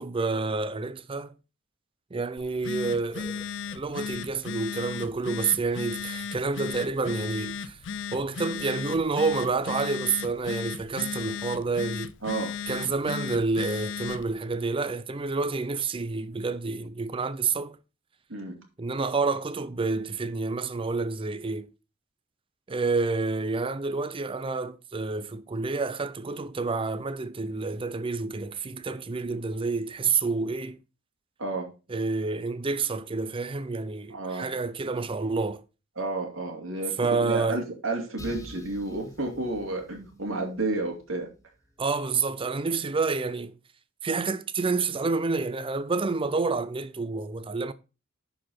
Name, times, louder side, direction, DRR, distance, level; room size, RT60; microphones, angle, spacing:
voice 1, 0.0-1.3 2.1-3.4 3.7-7.8 8.1-12.1 12.7-17.8 18.8-21.7 22.7-30.8 31.9-35.6 37.0-37.6 41.8-43.6 44.0-47.7, right 4 dB, 25° right, 0.5 m, -29 dB
Telephone, 2.4-14.3, left 7 dB, 65° left, 0.5 m, -36 dB
voice 2, 12.2-12.6 18.3-18.6 31.4-31.7 34.1-34.5 36.0-41.3, right 2 dB, 85° right, 2.6 m, -31 dB
sound 1, 38.2-41.9, equal, 15° left, 1.1 m, -48 dB
10.5 x 4.8 x 4.3 m
head